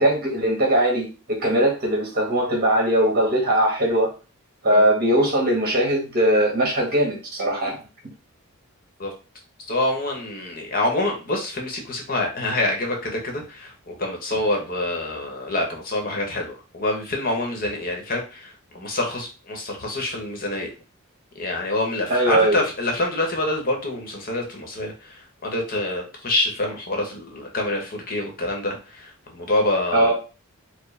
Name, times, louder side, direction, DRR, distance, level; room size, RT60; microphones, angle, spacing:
voice 1, 0.0-4.1 4.6-7.8 22.1-22.6 29.9-30.1, right 1 dB, 45° right, 1.4 m, -20 dB
voice 2, 9.7-20.7 21.3-30.1, left 2 dB, 40° left, 0.9 m, -26 dB
4.6 x 2.1 x 3.2 m
head